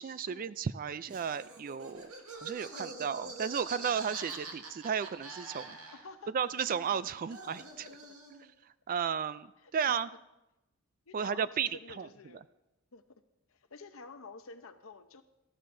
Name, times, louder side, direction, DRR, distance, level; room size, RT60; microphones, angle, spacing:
voice 1, 0.0-5.8 6.3-7.9 8.3-8.4 8.9-10.1 11.1-11.7 12.0-12.1, right 7 dB, 40° right, 16 dB, 0.3 m, -34 dB
Laughter, 1.1-6.2 6.5-8.5, right 3 dB, 85° right, 1.9 m, -45 dB
voice 2, 2.7-3.1 5.9-6.3 7.8-8.2 9.6-10.0 11.1-12.4 12.9-13.2 13.5-15.2, left 4 dB, 65° left, 9 dB, 0.8 m, -51 dB
18.5 x 13.5 x 2.6 m, 0.96 s
head